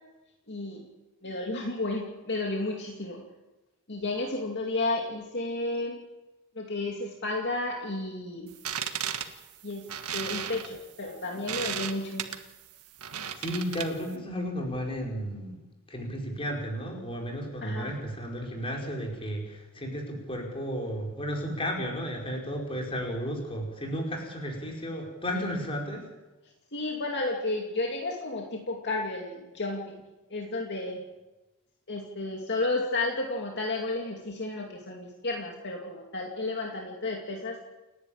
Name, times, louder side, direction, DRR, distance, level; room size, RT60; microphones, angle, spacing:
voice 1, 0.5-0.9 1.2-3.2 3.9-6.0 6.5-8.5 9.6-9.8 10.1-12.3 17.6-17.9 26.7-30.0 30.3-31.0 31.9-37.6, left 2 dB, 50° left, 0 dB, 2.6 m, -32 dB
sound 1, 8.5-14.1, right 9 dB, 90° right, 1.6 m, -35 dB
voice 2, 13.4-15.6 15.9-26.0, equal, 25° left, 0 dB, 5.2 m, -33 dB
29.5 x 11.5 x 8.8 m, 1.1 s
head